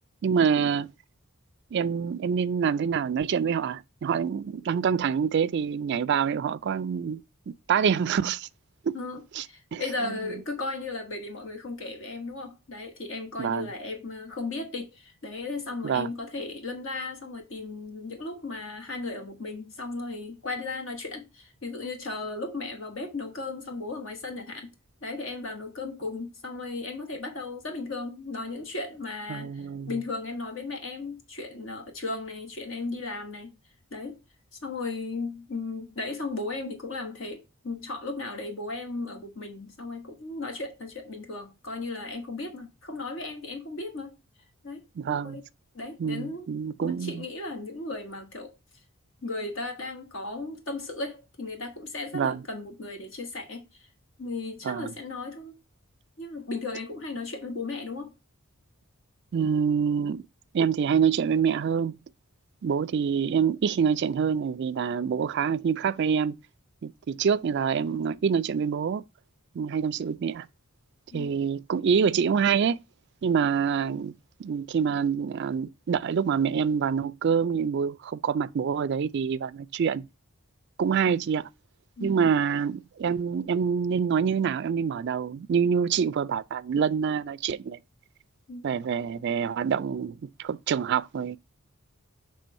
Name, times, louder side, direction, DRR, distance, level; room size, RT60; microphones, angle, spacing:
voice 1, 0.2-0.9 1.7-8.5 8.8-9.0 9.3-9.4 9.7-9.8 13.4-13.7 15.8-16.1 29.3-29.9 45.0-45.4 46.0-47.1 52.1-52.4 54.6-54.9 59.3-60.2 60.5-62.0 62.6-66.4 66.8-69.0 69.5-70.5 71.1-72.8 73.2-74.1 74.4-80.1 80.8-81.5 82.0-87.8 88.6-91.4, right 6 dB, 50° right, 0.3 m, -26 dB
voice 2, 8.9-24.7 25.0-33.6 33.9-34.2 34.6-44.2 44.6-45.4 45.7-46.5 46.8-48.5 49.2-53.9 54.2-55.5 56.2-58.1 71.1-71.4 82.0-82.2 88.5-88.7, left 3 dB, 60° left, 1.3 m, -36 dB
6.9 x 3.2 x 5.3 m
head